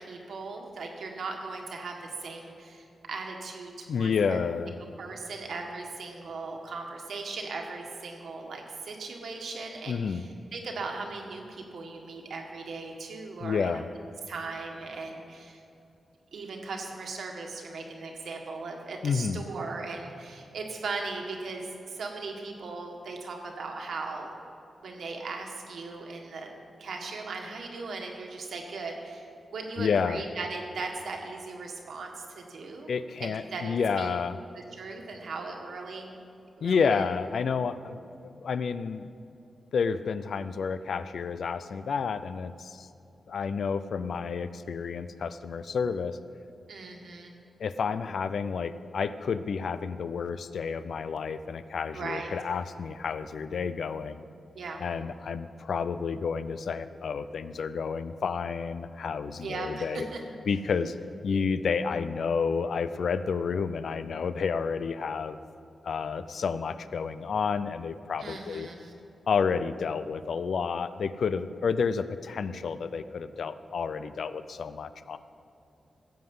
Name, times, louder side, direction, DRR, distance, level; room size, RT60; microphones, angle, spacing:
voice 1, 0.0-4.4 5.0-13.8 14.3-15.6 16.3-24.3 24.8-29.3 29.5-32.9 33.2-34.1 34.7-36.2 36.6-37.1 46.7-47.3 51.9-52.3 54.5-54.8 59.3-60.2 68.2-68.9, right 3 dB, 75° right, 2 dB, 1.7 m, -38 dB
voice 2, 3.9-4.7 9.9-10.2 13.4-13.8 19.0-19.4 29.8-30.2 32.9-34.4 36.6-39.1 39.7-42.9 43.3-46.2 47.6-54.2 54.8-60.1 60.5-60.9 61.2-65.4 65.8-68.7 69.3-75.2, left 5 dB, 75° left, 13 dB, 0.5 m, -30 dB
15.0 x 7.9 x 5.5 m, 2.7 s
wide cardioid pair, 100°, 0 cm